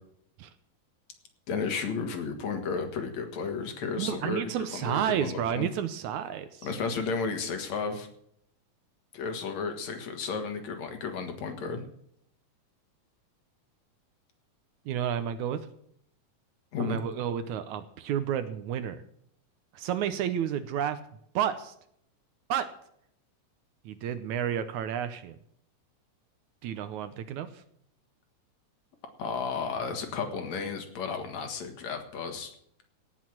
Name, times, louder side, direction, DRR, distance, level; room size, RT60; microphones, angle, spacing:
voice 1, 1.5-5.7 6.6-8.1 9.1-11.8 16.7-17.0 29.2-32.5, left 5 dB, 60° left, 5 dB, 2.8 m, -33 dB
voice 2, 4.0-6.7 14.9-15.6 16.8-19.0 19.7-21.0 21.4-21.7 22.5-22.7 23.9-25.4 26.6-27.5, right 9 dB, 75° right, 12 dB, 2.1 m, -31 dB
17.5 x 6.4 x 7.5 m, 0.69 s
omnidirectional pair, 3.7 m